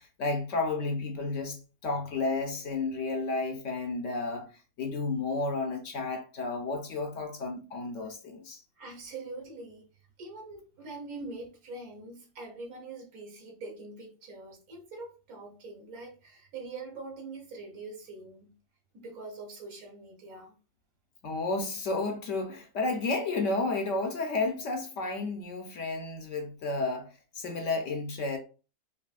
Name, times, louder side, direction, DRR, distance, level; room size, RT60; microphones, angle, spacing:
voice 1, 0.0-8.6 21.2-28.4, left 3 dB, 65° left, 0.9 m, -32 dB
voice 2, 8.8-9.9 10.2-18.6 18.9-20.5, right 3 dB, 70° right, 1.5 m, -43 dB
4.7 x 2.6 x 2.3 m
omnidirectional pair, 1.6 m